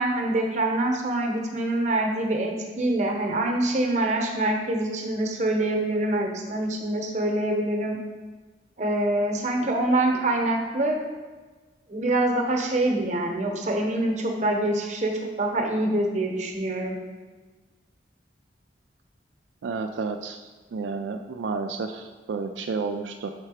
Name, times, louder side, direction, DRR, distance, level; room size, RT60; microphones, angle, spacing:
voice 1, 0.0-8.0 8.8-11.0 11.9-17.0, right 1 dB, 40° right, 2 dB, 0.9 m, -25 dB
voice 2, 19.6-20.4 20.7-23.3, right 4 dB, 80° right, 6 dB, 0.3 m, -31 dB
6.5 x 4.3 x 4.9 m, 1.4 s
head